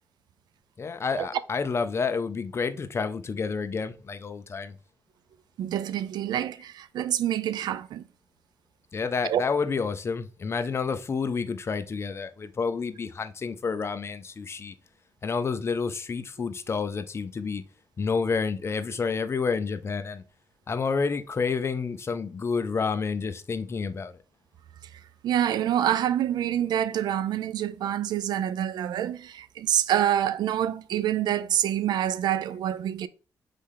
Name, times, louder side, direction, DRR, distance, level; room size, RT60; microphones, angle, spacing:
voice 1, 0.8-4.8 8.9-14.7 15.2-17.6 18.0-20.2 20.7-24.2, left 5 dB, 40° left, 0.5 m, -29 dB
voice 2, 5.6-8.1 9.2-9.4 24.9-33.1, right 11 dB, 85° right, 0.4 m, -27 dB
4.2 x 3.3 x 3.7 m
cardioid pair, 100°, 7 cm